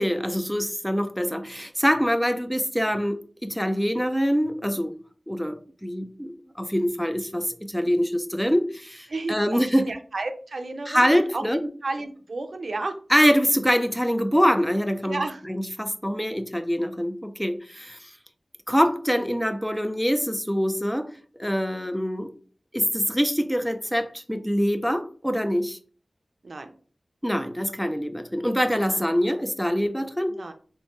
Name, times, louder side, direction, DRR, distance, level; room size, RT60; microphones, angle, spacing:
voice 1, 0.0-4.9 5.3-9.9 10.9-11.6 13.1-15.2 15.5-18.1 18.7-21.1 21.4-22.3 22.7-25.8 27.2-30.3, equal, 5° left, 0.4 m, -24 dB
voice 2, 9.1-13.0 15.0-15.4 26.4-26.7 28.8-29.0 30.3-30.5, right 2 dB, 70° right, 0.4 m, -32 dB
3.2 x 2.9 x 3.2 m
wide cardioid pair, 55°, 0 cm